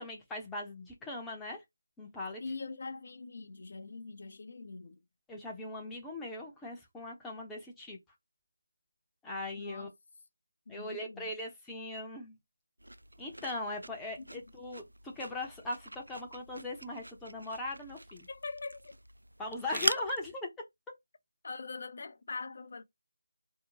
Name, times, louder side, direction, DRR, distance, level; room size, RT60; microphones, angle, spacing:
voice 1, 0.0-1.6 2.0-2.4 5.3-8.0 9.2-9.9 10.7-12.4 13.2-18.3 19.4-20.5, left 2 dB, 5° left, 0.7 m, -39 dB
voice 2, 2.4-5.0 9.6-9.9 10.7-11.3 14.2-14.4 18.3-19.0 21.4-22.8, left 3 dB, 45° left, 0.5 m, -43 dB
sound 1, 12.8-20.3, right 1 dB, 75° right, 0.3 m, -41 dB
4.2 x 2.7 x 2.8 m
figure-of-eight pair, 160°, 0 cm